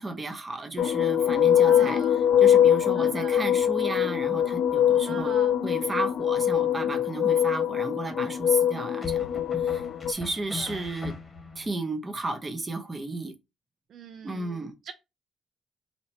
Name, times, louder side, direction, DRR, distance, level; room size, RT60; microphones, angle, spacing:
voice 1, 0.0-5.4 5.6-9.3 9.6-11.1 11.6-13.3 14.2-14.7, right 2 dB, 25° right, 0.8 m, -33 dB
sound 1, 0.8-10.1, left 10 dB, 65° left, 0.3 m, -23 dB
voice 2, 1.6-2.2 2.9-3.4 5.1-5.5 10.6-10.8 13.9-14.9, right 7 dB, 65° right, 0.4 m, -42 dB
sound 2, 6.3-6.9 9.0-11.7, left 4 dB, 20° left, 1.2 m, -40 dB
2.9 x 2.8 x 4.4 m
cardioid pair, 90°, 0 cm